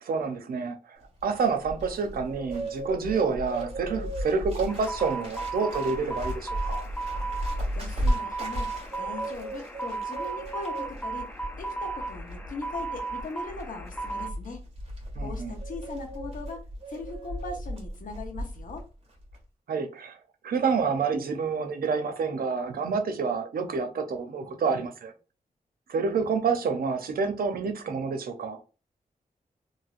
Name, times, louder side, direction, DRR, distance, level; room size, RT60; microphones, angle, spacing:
voice 1, 0.0-6.8 15.2-15.5 19.7-20.2 20.4-25.1 25.9-28.6, right 5 dB, 80° right, 0.6 m, -28 dB
Bird, 1.0-18.8 19.1-19.4, right 1 dB, 40° right, 1.5 m, -35 dB
sound 1, 4.7-14.3, right 3 dB, 10° left, 0.4 m, -35 dB
voice 2, 7.4-14.6 15.2-16.6 16.9-18.8, left 3 dB, 65° left, 0.8 m, -40 dB
3.1 x 2.6 x 2.4 m
wide cardioid pair, 110°, 15 cm